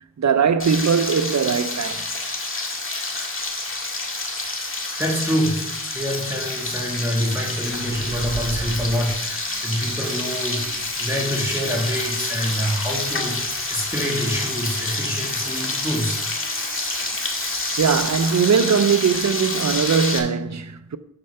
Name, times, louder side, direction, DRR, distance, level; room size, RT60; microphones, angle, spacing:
voice 1, 0.0-2.1 17.8-21.0, right 6 dB, 50° right, 0.6 m, -20 dB
Frying (food), 0.6-20.2, left 2 dB, 35° left, 1.9 m, -28 dB
voice 2, 5.0-5.6 5.9-13.4 13.7-16.2, equal, 5° right, 2.2 m, -26 dB
sound 1, 6.5-18.6, right 4 dB, 70° right, 1.1 m, -39 dB
6.8 x 6.7 x 5.5 m
cardioid pair, 50°, 36 cm